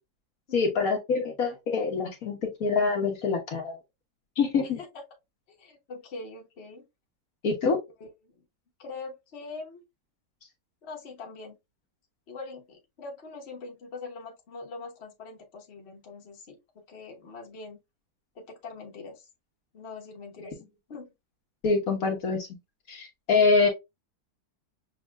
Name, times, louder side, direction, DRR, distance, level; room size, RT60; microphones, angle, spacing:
voice 1, 0.5-3.8 4.4-4.8 7.4-7.8 20.5-20.6 21.6-22.5 22.9-23.7, left 4 dB, 60° left, 1.6 m, -25 dB
voice 2, 5.5-6.9 8.0-8.3 8.8-9.8 10.8-11.6 12.3-16.6 16.9-17.8 18.3-19.3 19.7-20.6 20.9-21.1, left 3 dB, 45° left, 1.3 m, -43 dB
6.4 x 2.8 x 2.3 m
omnidirectional pair, 1.7 m